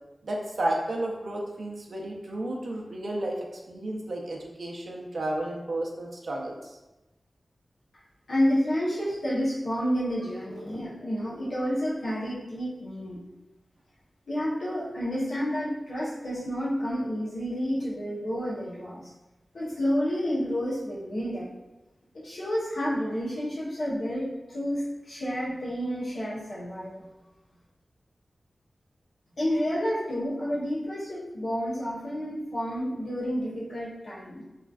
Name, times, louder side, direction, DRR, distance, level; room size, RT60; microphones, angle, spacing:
voice 1, 0.2-3.4 3.7-6.8, right 1 dB, 75° right, -2 dB, 0.5 m, -32 dB
voice 2, 8.3-13.2 14.3-19.1 19.5-21.5 22.1-27.0 29.4-34.4, equal, 85° left, -8 dB, 0.9 m, -30 dB
3.0 x 2.3 x 2.4 m, 1.0 s
cardioid pair, 45°, 0 cm